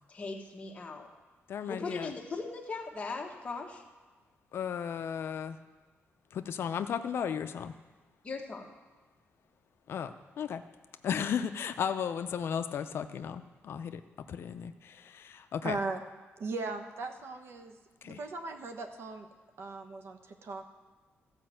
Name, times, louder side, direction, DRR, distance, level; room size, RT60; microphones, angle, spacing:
voice 1, 0.1-1.1 1.7-3.8 8.2-8.7, left 3 dB, 25° left, 1 dB, 1.2 m, -39 dB
voice 2, 1.5-2.1 4.5-5.6 6.3-7.7 9.9-10.6 11.0-14.0 14.3-15.8 18.0-18.2, left 8 dB, 60° left, 9 dB, 0.5 m, -35 dB
voice 3, 15.6-16.0 16.4-17.7 18.0-19.3 19.6-20.7, right 3 dB, 60° right, 6 dB, 1.1 m, -38 dB
14.5 x 5.2 x 7.6 m, 1.3 s
wide cardioid pair, 150°, 5 cm